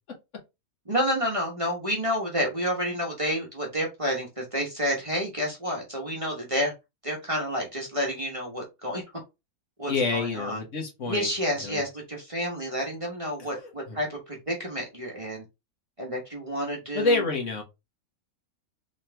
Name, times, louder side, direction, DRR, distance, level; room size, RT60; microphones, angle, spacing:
voice 1, 0.9-6.7 7.0-9.0 9.8-10.6 11.1-15.4 16.0-17.2, equal, 25° right, -2 dB, 1.1 m, -29 dB
voice 2, 9.9-11.3 11.6-11.8 13.4-14.0 16.9-17.6, left 3 dB, 55° left, 1 dB, 1.5 m, -28 dB
3.9 x 3.0 x 3.3 m, 0.23 s
omnidirectional pair, 1.5 m